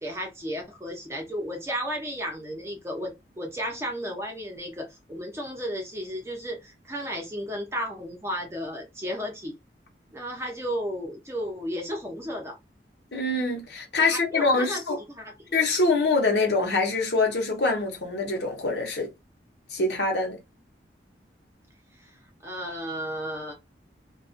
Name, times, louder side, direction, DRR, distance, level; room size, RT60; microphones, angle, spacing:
voice 1, 0.0-9.6 10.1-12.6 14.0-14.8 15.1-15.5 22.0-22.1 22.4-23.5, equal, 15° right, 0.7 m, -33 dB
voice 2, 13.1-15.0 15.5-19.1 19.7-20.4, left 3 dB, 70° left, 0.8 m, -24 dB
2.3 x 2.3 x 2.5 m
head